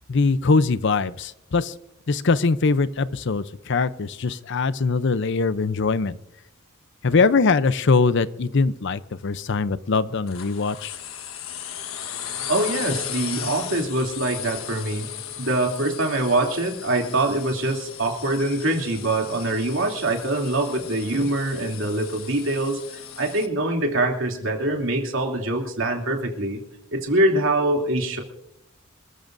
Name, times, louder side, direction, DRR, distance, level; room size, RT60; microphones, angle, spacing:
voice 1, 0.1-1.7 2.1-6.2 7.0-10.9, left 4 dB, 60° left, 15 dB, 0.6 m, -22 dB
sound 1, 10.3-23.5, left 9 dB, 85° left, 1.3 m, -36 dB
voice 2, 12.5-15.1 15.4-26.6 26.9-28.2, right 2 dB, 70° right, 1 dB, 2.9 m, -24 dB
27.0 x 14.0 x 2.6 m, 0.78 s
head